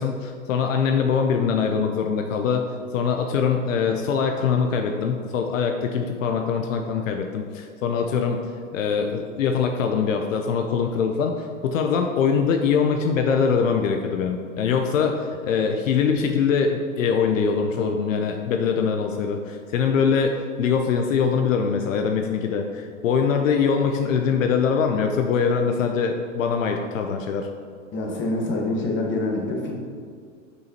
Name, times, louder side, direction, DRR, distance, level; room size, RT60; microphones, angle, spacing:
voice 1, 0.0-8.4 8.7-27.5, left 6 dB, 75° left, 4 dB, 0.6 m, -23 dB
voice 2, 27.9-29.7, left 2 dB, 30° left, 0 dB, 1.3 m, -25 dB
6.3 x 5.5 x 2.9 m, 2.2 s
hypercardioid pair, 100°, 40 cm